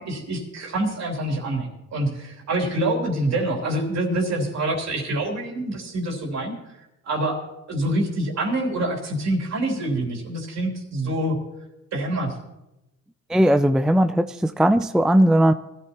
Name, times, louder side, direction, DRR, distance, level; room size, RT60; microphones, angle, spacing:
voice 1, 0.0-6.6 7.0-7.4 7.7-11.4 11.9-12.3, right 1 dB, 60° right, 0 dB, 3.4 m, -26 dB
voice 2, 13.3-15.5, right 1 dB, ahead, 10 dB, 0.4 m, -18 dB
20.5 x 13.5 x 3.0 m, 0.93 s
cardioid pair, 90°, 30 cm